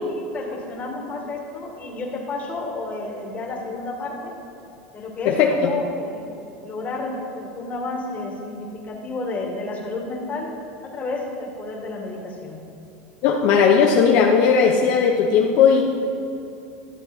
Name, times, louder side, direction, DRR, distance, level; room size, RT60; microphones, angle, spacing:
voice 1, 0.0-4.3 4.9-6.3 6.6-10.5 10.9-12.6, left 2 dB, 25° left, 0 dB, 1.9 m, -31 dB
voice 2, 13.2-15.8, left 6 dB, 60° left, 1 dB, 0.8 m, -17 dB
12.5 x 6.8 x 4.5 m, 2.8 s
supercardioid pair, 130°, 6 cm